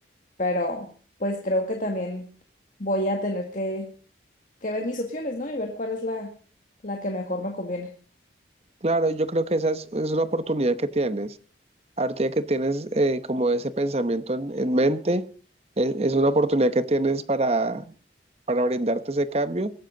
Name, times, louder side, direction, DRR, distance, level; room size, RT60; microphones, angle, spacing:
voice 1, 0.4-0.9 1.2-2.3 2.8-3.9 4.6-6.3 6.8-7.9, left 1 dB, 45° left, 2 dB, 1.9 m, -28 dB
voice 2, 8.8-11.3 12.0-15.2 15.8-17.8 18.5-19.7, right 2 dB, 35° right, 12 dB, 0.9 m, -24 dB
22.0 x 12.5 x 4.0 m, 0.39 s
head